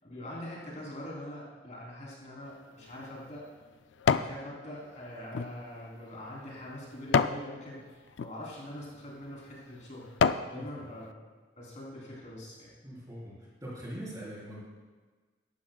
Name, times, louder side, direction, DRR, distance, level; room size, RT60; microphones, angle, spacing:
voice 1, 0.0-3.5 4.0-10.1 10.5-11.2 11.6-12.7, left 1 dB, 40° left, -5 dB, 3.5 m, -43 dB
sound 1, 2.5-4.4 4.9-7.5 8.1-8.3 9.0-9.2 9.7-10.5 11.0-11.1, left 6 dB, 75° left, 0.4 m, -30 dB
voice 2, 10.5-10.8 12.8-13.3 13.6-14.6, right 1 dB, 20° right, -7 dB, 4.2 m, -42 dB
16.5 x 12.0 x 2.3 m, 1.4 s
head